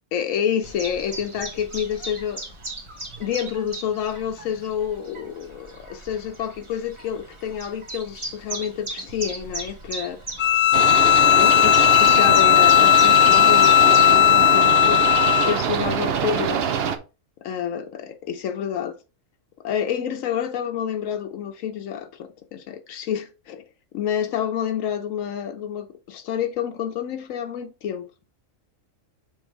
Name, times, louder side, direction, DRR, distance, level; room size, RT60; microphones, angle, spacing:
voice 1, 0.1-2.4 3.2-10.2 11.0-15.0 15.3-16.7 17.4-19.0 19.6-23.6 23.9-28.0, left 8 dB, 85° left, 1.1 m, -28 dB
Chirp tweet, 0.6-14.2, right 2 dB, 25° right, 1.2 m, -37 dB
Bowed string instrument, 10.4-15.6, left 13 dB, 70° left, 0.4 m, -16 dB
sound 1, 10.7-17.0, right 7 dB, 55° right, 0.8 m, -24 dB
6.3 x 3.3 x 4.6 m
omnidirectional pair, 1.3 m